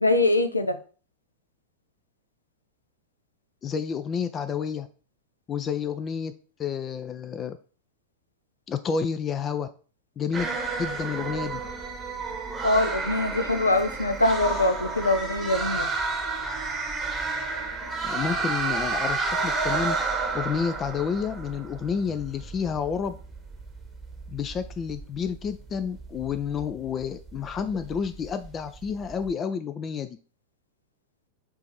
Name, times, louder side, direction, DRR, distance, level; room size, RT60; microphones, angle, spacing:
voice 1, 0.0-0.8 12.6-15.9, left 2 dB, 80° left, 9 dB, 0.5 m, -23 dB
voice 2, 3.6-4.9 5.5-6.3 6.6-7.6 8.7-9.7 10.2-10.5 10.8-11.6 18.0-20.0 20.3-23.2 24.3-30.1, left 6 dB, 25° left, 10 dB, 0.3 m, -30 dB
sound 1, 10.3-29.3, right 4 dB, 15° right, 0.9 m, -31 dB
4.6 x 2.6 x 4.4 m, 0.38 s
figure-of-eight pair, 90°, 0 cm